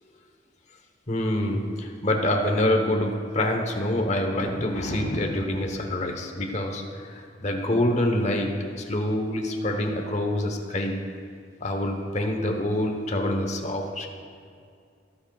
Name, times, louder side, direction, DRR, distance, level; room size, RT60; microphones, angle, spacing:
voice 1, 1.1-11.1 11.6-14.1, left 1 dB, 40° left, 3 dB, 1.0 m, -26 dB
sound 1, 4.3-5.5, left 1 dB, 80° left, 1.8 m, -34 dB
21.5 x 7.7 x 2.4 m, 2.2 s
head